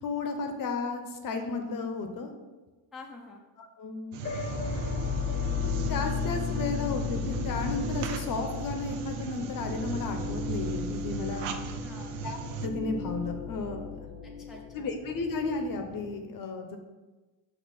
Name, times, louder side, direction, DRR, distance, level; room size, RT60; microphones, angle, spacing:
voice 1, 0.0-2.3 3.6-4.2 5.6-11.5 12.2-14.1 14.7-16.8, left 3 dB, 45° left, 5 dB, 0.8 m, -33 dB
voice 2, 2.9-3.4 11.5-12.2 14.2-14.9, left 3 dB, ahead, -1 dB, 0.5 m, -48 dB
sound 1, 4.1-12.7, right 6 dB, 90° right, 0.7 m, -38 dB
sound 2, 4.2-16.1, left 4 dB, 20° left, 0.9 m, -35 dB
6.4 x 3.2 x 5.9 m, 1.2 s
cardioid pair, 145°, 47 cm